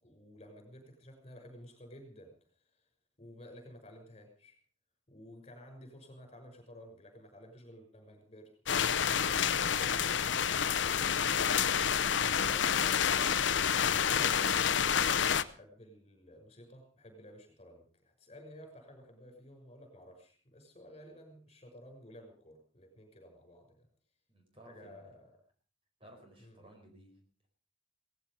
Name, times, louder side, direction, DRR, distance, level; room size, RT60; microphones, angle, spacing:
voice 1, 0.0-2.3 3.2-4.6 5.1-13.7 15.5-23.9 24.6-25.3 26.4-26.7, equal, 30° left, 5 dB, 6.2 m, -53 dB
sound 1, 8.7-15.4, left 8 dB, 65° left, 0.7 m, -28 dB
voice 2, 24.3-25.1 26.0-27.5, right 1 dB, 30° right, 3 dB, 4.9 m, -57 dB
18.0 x 15.0 x 5.3 m, 0.43 s
head